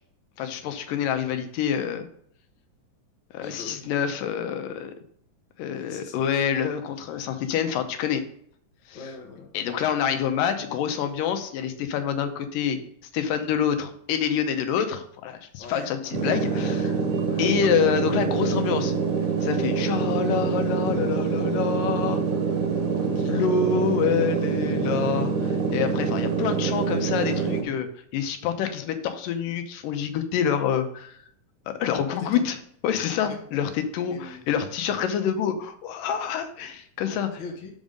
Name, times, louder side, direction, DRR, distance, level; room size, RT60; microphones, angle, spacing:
voice 1, 0.4-2.1 3.3-4.9 5.6-8.2 8.9-9.0 9.5-12.8 13.1-16.9 17.4-18.9 19.4-22.2 23.3-27.9 28.1-31.2 31.7-32.6 32.8-37.3, left 8 dB, 85° left, 7 dB, 2.5 m, -27 dB
voice 2, 3.4-3.9 5.7-6.5 8.9-9.5 15.6-16.8 17.3-17.8 23.0-23.4 32.0-32.4 33.2-33.4 34.1-34.5 37.4-37.7, left 3 dB, 55° left, 0 dB, 1.4 m, -41 dB
sound 1, 16.1-27.6, right 5 dB, 70° right, 2.6 m, -25 dB
6.3 x 5.3 x 5.2 m, 0.64 s
omnidirectional pair, 3.8 m